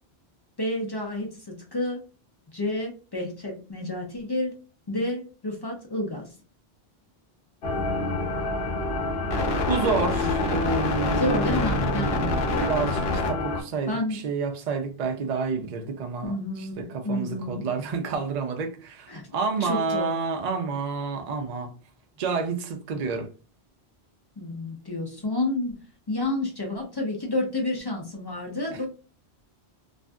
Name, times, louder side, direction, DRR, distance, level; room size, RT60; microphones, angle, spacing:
voice 1, 0.6-2.0 2.5-4.6 4.9-6.3 10.2-10.3 11.2-12.3 13.9-14.2 16.2-17.6 19.1-19.2 19.6-20.2 24.4-25.8 26.1-28.9, left 1 dB, 35° left, 0.4 m, -30 dB
sound 1, 7.6-13.6, left 2 dB, 70° left, 0.9 m, -26 dB
voice 2, 9.7-21.7 22.2-23.3 28.7-28.9, right 5 dB, 55° right, 0.5 m, -29 dB
2.5 x 2.4 x 2.2 m
omnidirectional pair, 1.1 m